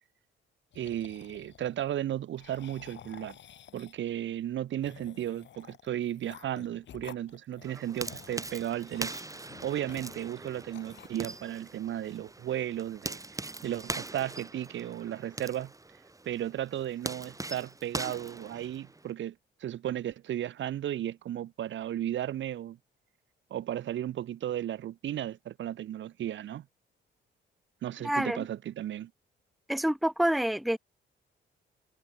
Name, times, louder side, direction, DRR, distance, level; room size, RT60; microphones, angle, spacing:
sound 1, 0.7-1.8 2.3-4.1 4.8-10.4 10.7-11.6, left 10 dB, 65° left, 3.3 m, -52 dB
voice 1, 0.8-3.4 3.7-9.1 9.6-15.7 16.2-19.4 19.6-22.8 23.5-26.7 27.8-29.1, right 11 dB, 70° right, 2.1 m, -35 dB
sound 2, 7.6-19.1, right 2 dB, 15° right, 5.4 m, -41 dB
voice 2, 28.0-28.5 29.7-30.8, right 1 dB, ahead, 1.0 m, -27 dB
cardioid pair, 90°, 20 cm